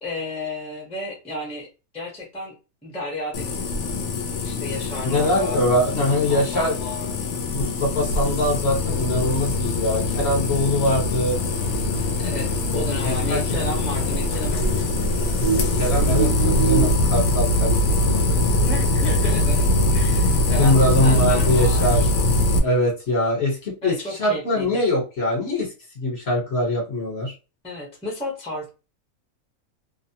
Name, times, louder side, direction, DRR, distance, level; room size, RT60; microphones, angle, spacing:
voice 1, 0.0-1.7 1.9-2.6 2.8-3.6 4.4-7.3 9.3-9.6 10.5-10.7 12.2-15.1 18.5-19.6 19.9-22.1 23.8-24.8 27.6-28.7, left 1 dB, 5° left, -2 dB, 0.6 m, -33 dB
sound 1, 3.3-22.6, left 2 dB, 65° left, 0.8 m, -22 dB
voice 2, 5.0-6.8 7.5-11.4 13.0-13.4 15.5-18.5 20.6-22.1 22.6-27.3, left 1 dB, 50° left, -2 dB, 1.2 m, -23 dB
sound 2, 11.3-17.0, right 7 dB, 75° right, 0.4 m, -30 dB
2.6 x 2.0 x 2.7 m, 0.31 s
omnidirectional pair, 1.5 m